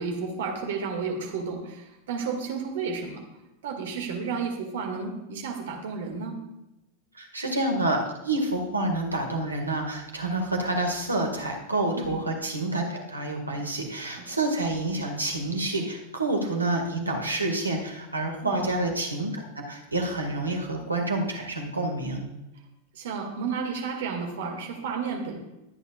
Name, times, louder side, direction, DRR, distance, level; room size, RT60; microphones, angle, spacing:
voice 1, 0.0-3.2 3.6-6.4 11.9-12.2 14.2-14.4 18.4-18.9 22.9-25.4, right 5 dB, 60° right, 3 dB, 2.1 m, -32 dB
voice 2, 7.2-22.3, right 2 dB, 80° right, 2 dB, 1.9 m, -28 dB
22.5 x 9.1 x 2.4 m, 0.96 s
figure-of-eight pair, 90°, 0 cm